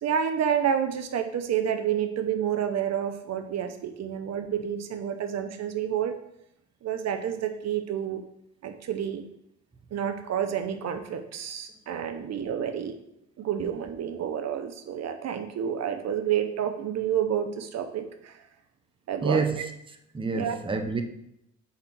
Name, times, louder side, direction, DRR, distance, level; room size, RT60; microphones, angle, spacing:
voice 1, 0.0-6.1 6.8-8.2 8.6-9.2 9.9-13.0 13.4-18.4 19.1-19.4 20.3-20.6, right 9 dB, 60° right, 0.7 m, -29 dB
voice 2, 19.2-19.7 20.1-21.0, right 4 dB, 15° right, 0.7 m, -28 dB
4.9 x 4.3 x 5.9 m
cardioid pair, 90°, 30 cm